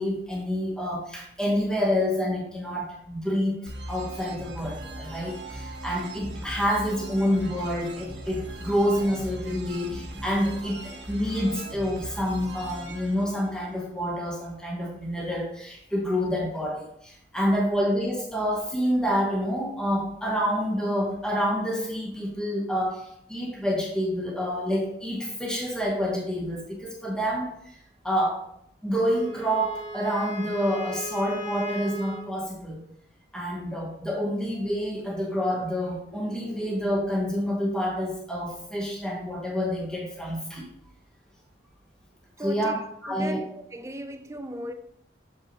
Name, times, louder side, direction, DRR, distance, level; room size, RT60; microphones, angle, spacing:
voice 1, 0.0-3.6 3.9-27.8 28.0-28.4 28.8-32.8 33.3-40.7 42.4-42.8 43.0-43.4, equal, 5° left, 1.1 m, -28 dB
sound 1, 3.7-14.3, right 1 dB, 60° right, 0.9 m, -39 dB
Wind instrument woodwind instrument, 29.1-32.3, equal, 80° left, 1.5 m, -37 dB
voice 2, 42.4-42.7 43.1-44.7, right 1 dB, 15° right, 0.4 m, -36 dB
6.6 x 5.5 x 3.0 m
head